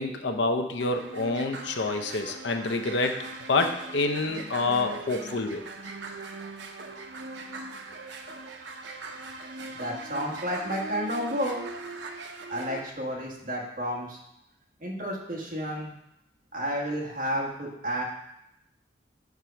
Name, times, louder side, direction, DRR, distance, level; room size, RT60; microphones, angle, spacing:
voice 1, 0.0-3.2 3.5-5.6, left 3 dB, 75° left, 5 dB, 0.6 m, -27 dB
sound 1, 0.8-12.8, right 3 dB, 80° right, 0.7 m, -40 dB
voice 2, 9.7-11.6 12.5-14.2 14.8-15.9 16.5-18.0, equal, 45° right, -2 dB, 1.4 m, -31 dB
5.1 x 4.7 x 5.7 m, 0.82 s
head